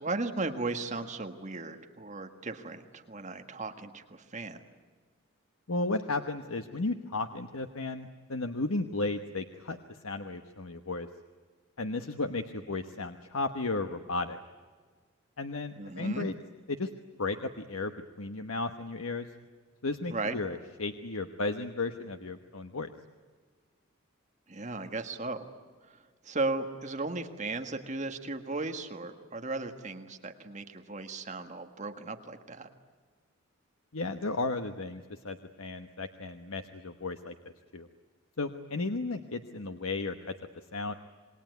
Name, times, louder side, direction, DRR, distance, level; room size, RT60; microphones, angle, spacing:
voice 1, 0.0-4.6 15.8-16.3 20.1-20.4 24.5-25.5 25.8-32.7, right 3 dB, 35° right, 6 dB, 1.7 m, -36 dB
voice 2, 5.7-11.1 11.8-14.4 15.4-16.4 16.7-16.9 17.2-17.9 18.2-19.3 19.8-22.9 33.9-37.9 38.4-40.9, left 3 dB, 85° left, 7 dB, 1.2 m, -34 dB
27.5 x 21.0 x 9.5 m, 1.5 s
head